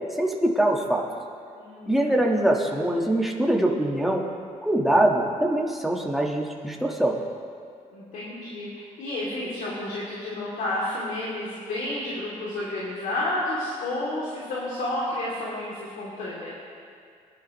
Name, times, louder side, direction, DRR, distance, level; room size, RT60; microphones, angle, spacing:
voice 1, 0.2-1.0 1.8-4.2 4.6-7.2, right 1 dB, ahead, -1 dB, 1.6 m, -23 dB
voice 2, 1.5-2.2 7.9-8.7 9.0-16.5, left 1 dB, 80° left, -7 dB, 2.8 m, -31 dB
23.0 x 11.0 x 3.1 m, 2.3 s
cardioid pair, 125°, 14 cm